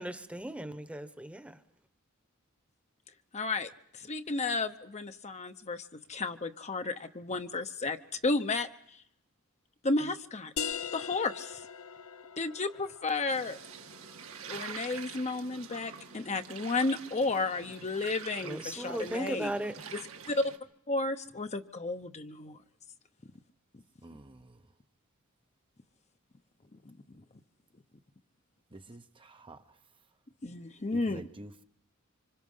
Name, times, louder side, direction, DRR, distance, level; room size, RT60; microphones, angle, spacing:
voice 1, 0.0-1.6 18.4-19.8, right 1 dB, 5° right, 1.1 m, -37 dB
voice 2, 3.3-8.0 8.2-8.7 9.8-10.5 10.9-11.6 12.4-13.6 14.5-19.5 19.9-20.0 20.3-20.5 20.9-22.6 26.8-26.9 30.4-31.2, left 3 dB, 35° left, 0.9 m, -32 dB
sound 1, 10.6-15.9, left 7 dB, 75° left, 0.9 m, -42 dB
sound 2, 13.3-20.6, right 6 dB, 75° right, 1.9 m, -46 dB
voice 3, 24.0-24.7 28.7-29.8 30.9-31.6, right 2 dB, 25° right, 0.8 m, -49 dB
26.0 x 25.5 x 5.6 m
head